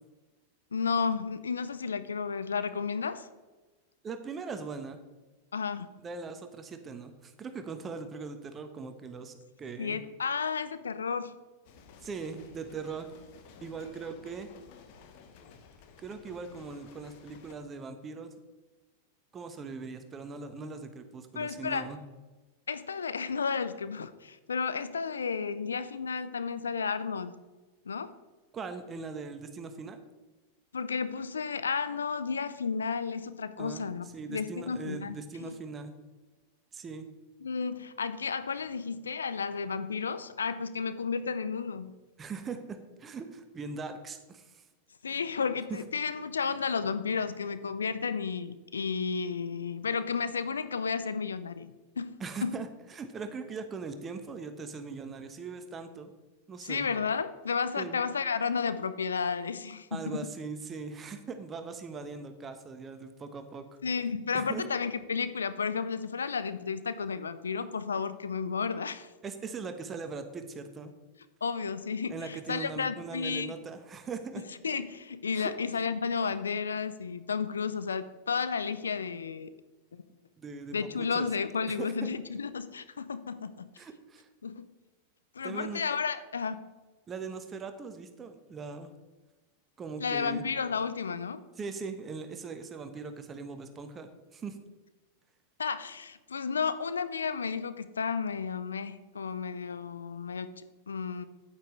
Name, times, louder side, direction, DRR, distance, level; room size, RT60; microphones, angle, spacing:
voice 1, 0.7-3.3 5.5-5.9 9.8-11.3 21.4-21.9 22.7-27.4 27.9-28.1 30.7-35.5 37.4-41.9 45.0-52.1 52.4-52.5 56.6-60.3 63.8-69.1 71.4-73.5 74.6-79.5 79.9-80.0 80.7-83.7 84.4-84.7 85.4-86.7 90.0-91.4 95.6-101.2, left 5 dB, 80° left, 13 dB, 0.5 m, -32 dB
voice 2, 4.0-5.0 6.0-10.0 12.0-13.1 13.6-14.5 16.0-18.3 19.3-22.0 28.5-30.0 33.6-33.8 34.1-35.9 36.7-37.1 42.2-44.6 52.2-56.1 56.5-56.9 57.8-58.0 59.9-63.6 64.3-64.6 69.2-70.9 72.1-74.4 75.3-75.5 80.4-81.3 81.6-82.1 83.8-84.3 85.4-85.8 87.1-88.9 89.8-90.4 91.6-94.6, right 4 dB, 25° right, 8 dB, 1.1 m, -40 dB
sound 1, 11.6-17.5, left 6 dB, 50° left, 1.1 m, -54 dB
9.0 x 9.0 x 3.2 m, 1.2 s
figure-of-eight pair, 95°, 0 cm